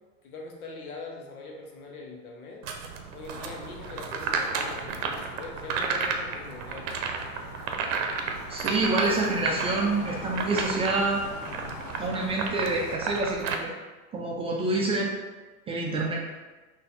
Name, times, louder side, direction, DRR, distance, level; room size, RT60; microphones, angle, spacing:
voice 1, 0.2-2.7 3.1-6.9, left 3 dB, 85° left, 0 dB, 1.1 m, -42 dB
sound 1, 2.6-13.5, right 5 dB, 60° right, 0.7 m, -32 dB
sound 2, 3.3-13.0, left 4 dB, 40° left, 0.7 m, -43 dB
voice 2, 8.5-11.2 12.0-13.7 14.1-15.1 15.7-16.1, right 2 dB, 15° right, -2 dB, 0.3 m, -27 dB
4.1 x 2.8 x 4.0 m, 1.3 s
hypercardioid pair, 100°, 43 cm